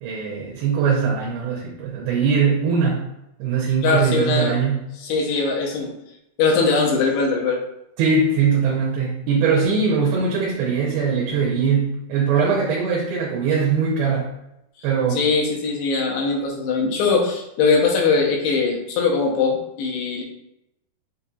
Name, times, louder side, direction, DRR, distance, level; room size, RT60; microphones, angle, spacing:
voice 1, 0.0-3.1 3.4-4.9 8.0-14.3 14.8-15.2, right 5 dB, 80° right, -3 dB, 2.6 m, -21 dB
voice 2, 3.8-4.6 5.0-5.9 6.4-7.6 15.2-20.2, left 4 dB, 85° left, -1 dB, 2.8 m, -21 dB
7.2 x 2.6 x 2.3 m, 0.84 s
omnidirectional pair, 4.6 m